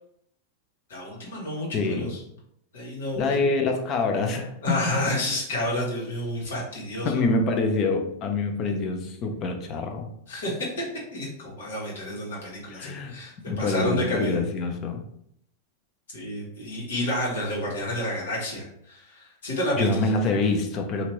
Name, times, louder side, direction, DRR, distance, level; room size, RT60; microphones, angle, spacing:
voice 1, 0.9-2.2 2.7-3.3 4.6-7.2 10.3-10.8 11.1-14.4 16.1-20.0, left 1 dB, 85° left, -5 dB, 1.5 m, -30 dB
voice 2, 1.7-2.1 3.2-4.8 7.0-10.1 12.7-13.2 13.5-15.0 19.8-21.1, left 3 dB, 40° left, 5 dB, 0.5 m, -26 dB
2.8 x 2.5 x 3.0 m, 0.72 s
hypercardioid pair, 125°, 0 cm